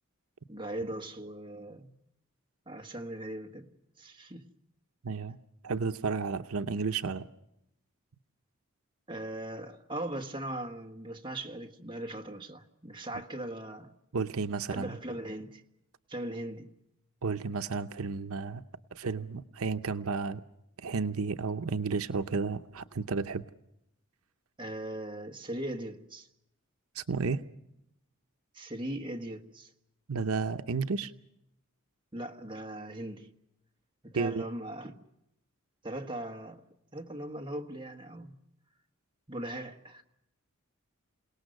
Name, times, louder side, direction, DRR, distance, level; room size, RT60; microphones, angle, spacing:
voice 1, 0.5-1.9 2.7-3.7 4.0-4.5 9.1-13.9 14.7-15.6 16.1-16.7 24.6-26.3 28.5-29.7 32.1-33.3 34.0-35.0 35.8-36.6 36.9-38.4 39.3-40.0, right 1 dB, 25° right, 1.4 m, -39 dB
voice 2, 5.0-5.4 5.6-7.3 14.1-15.0 17.2-18.6 18.9-20.4 20.8-23.4 26.9-27.4 30.1-31.1 34.1-34.4, right 4 dB, 80° right, 0.7 m, -32 dB
28.5 x 18.5 x 6.5 m
head